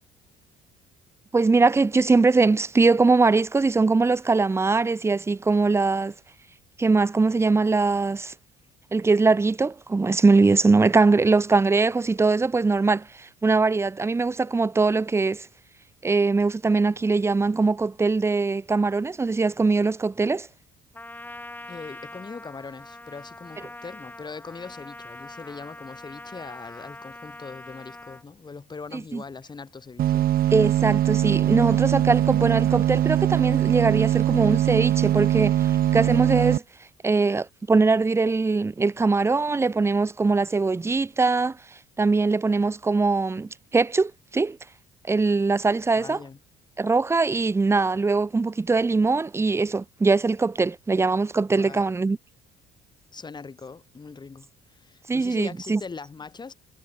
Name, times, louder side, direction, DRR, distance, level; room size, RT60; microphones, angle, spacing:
voice 1, 1.3-6.1 6.8-8.3 8.9-15.5 16.0-20.5 28.9-29.2 30.5-36.6 37.0-41.6 42.0-44.6 45.1-46.2 46.8-52.2 55.1-55.8, right 3 dB, 15° right, 0.7 m, -22 dB
Trumpet, 20.9-28.2, left 2 dB, 10° left, 5.8 m, -43 dB
voice 2, 21.7-30.3 45.9-46.4 51.5-51.9 53.1-56.5, left 4 dB, 25° left, 4.6 m, -41 dB
sound 1, 30.0-36.6, right 12 dB, 60° right, 1.0 m, -22 dB
cardioid pair, 110°, 17 cm